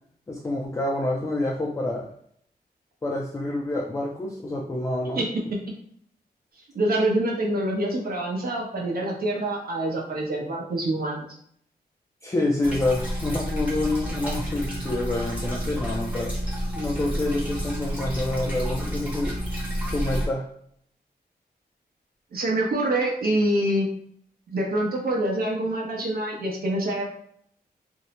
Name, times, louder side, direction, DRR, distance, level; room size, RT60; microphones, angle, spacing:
voice 1, 0.3-2.1 3.0-5.2 12.2-16.3 16.8-19.4 19.8-20.5, left 2 dB, 15° left, -3 dB, 0.3 m, -27 dB
voice 2, 6.7-11.3 22.3-23.9 24.5-27.0, right 1 dB, 65° right, -1 dB, 0.7 m, -25 dB
sound 1, 12.6-20.3, equal, 10° right, 0.7 m, -30 dB
2.6 x 2.0 x 2.9 m, 0.66 s
wide cardioid pair, 150°, 17 cm